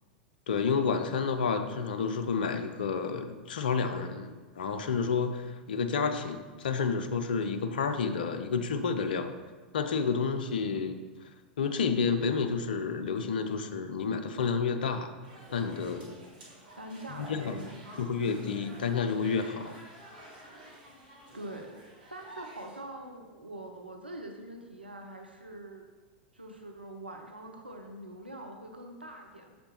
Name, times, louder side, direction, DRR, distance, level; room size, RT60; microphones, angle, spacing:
voice 1, 0.5-9.3 9.7-11.1 11.6-15.1 15.5-16.2 17.1-17.7 18.0-19.8, left 5 dB, 65° left, 8 dB, 0.5 m, -30 dB
sound 1, 15.2-22.8, right 1 dB, 65° right, 1.9 m, -50 dB
voice 2, 16.8-18.0 21.3-21.8 22.1-25.8 26.3-29.6, right 1 dB, 85° right, 3 dB, 0.6 m, -44 dB
7.1 x 5.1 x 3.1 m, 1.4 s
figure-of-eight pair, 90°, 5 cm